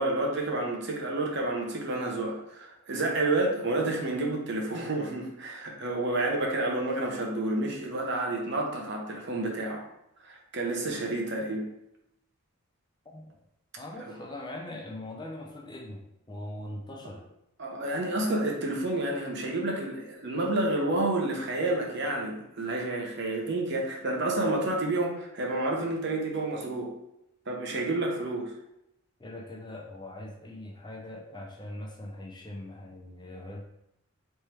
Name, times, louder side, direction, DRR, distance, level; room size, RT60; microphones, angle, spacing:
voice 1, 0.0-9.9 10.2-11.6 13.9-14.1 17.6-26.9 27.5-28.5, right 2 dB, 50° right, 0 dB, 0.8 m, -30 dB
voice 2, 13.8-17.2 29.2-33.6, left 1 dB, 20° left, 0 dB, 0.5 m, -41 dB
3.4 x 3.1 x 4.5 m, 0.82 s
head